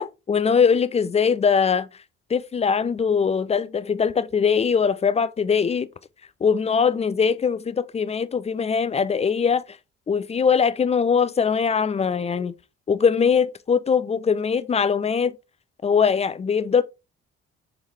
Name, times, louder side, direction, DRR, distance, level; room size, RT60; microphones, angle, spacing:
voice 1, 0.0-1.9 2.3-5.9 6.4-9.6 10.1-12.5 12.9-15.4 15.8-16.8, left 6 dB, 20° left, 0.3 m, -21 dB
4.7 x 3.6 x 3.0 m
hypercardioid pair, 40°, 34 cm